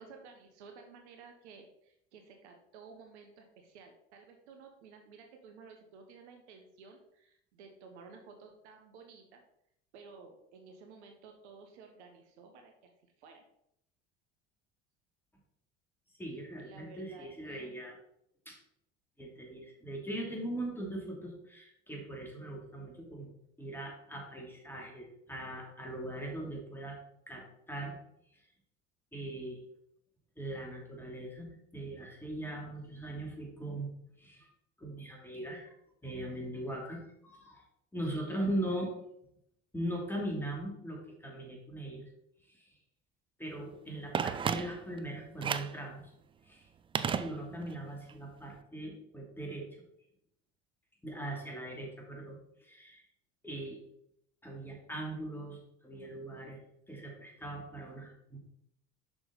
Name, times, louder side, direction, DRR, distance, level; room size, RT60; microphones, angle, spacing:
voice 1, 0.0-9.4 9.9-12.9 13.2-13.4 16.6-17.8 38.3-38.5, right 5 dB, 70° right, 4 dB, 1.3 m, -54 dB
voice 2, 16.2-18.0 18.5-18.6 19.2-23.3 23.6-27.0 27.3-27.9 28.3-28.4 29.1-29.6 30.4-34.5 34.8-35.7 36.0-37.6 37.9-38.9 39.7-42.1 42.5-42.7 43.4-46.1 46.4-46.7 47.1-49.8 51.0-53.0 53.4-53.8 54.4-56.6 56.9-58.4, right 1 dB, 5° left, -1 dB, 2.9 m, -40 dB
Telephone, 44.1-45.0 45.4-45.8 47.0-47.8 48.1-48.2, right 7 dB, 15° right, 0.3 m, -33 dB
6.3 x 6.0 x 4.1 m, 0.75 s
hypercardioid pair, 70°, 35 cm